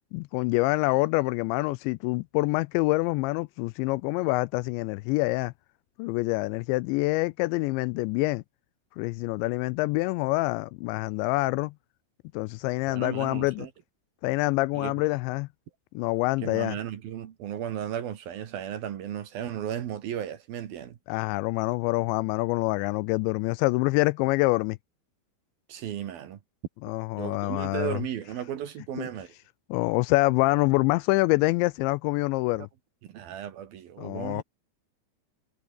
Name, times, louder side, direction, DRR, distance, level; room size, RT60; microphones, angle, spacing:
voice 1, 0.1-5.5 6.0-8.4 9.0-11.7 12.3-13.7 14.2-15.5 15.9-16.8 21.1-24.8 26.8-28.0 29.0-29.1 29.7-32.7 34.0-34.4, left 22 dB, 85° left, 2.7 m, -26 dB
voice 2, 12.9-13.7 14.7-14.9 16.4-21.0 25.7-26.4 27.2-29.3 33.1-34.4, right 10 dB, 60° right, 3.1 m, -35 dB
omnidirectional pair, 5.4 m